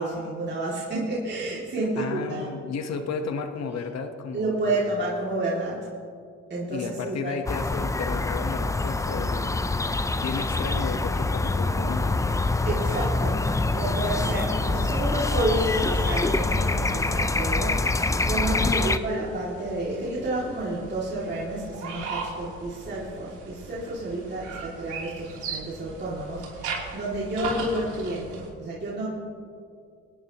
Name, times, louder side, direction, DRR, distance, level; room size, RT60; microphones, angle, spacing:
voice 1, 0.0-2.5 4.3-5.9 6.5-7.4 12.7-13.4 13.7-29.1, right 1 dB, 35° right, -6 dB, 2.5 m, -30 dB
voice 2, 2.0-4.6 6.7-9.9 10.2-12.2, left 5 dB, 60° left, 6 dB, 1.2 m, -33 dB
sound 1, 7.5-19.0, left 2 dB, 10° left, 0.4 m, -25 dB
sound 2, 18.6-28.5, right 4 dB, 75° right, 3.2 m, -38 dB
24.5 x 10.0 x 3.0 m, 2.3 s
cardioid pair, 90°, 30 cm